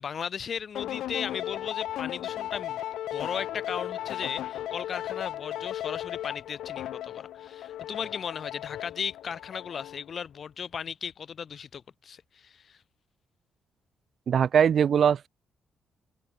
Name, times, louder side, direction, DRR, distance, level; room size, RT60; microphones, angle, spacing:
voice 1, 0.0-2.8 3.1-12.8, left 7 dB, 40° left, 5.6 m, -36 dB
sound 1, 0.7-10.1, left 12 dB, 90° left, 1.4 m, -36 dB
voice 2, 14.3-15.3, right 8 dB, 50° right, 0.5 m, -21 dB
cardioid pair, 155°, 0 cm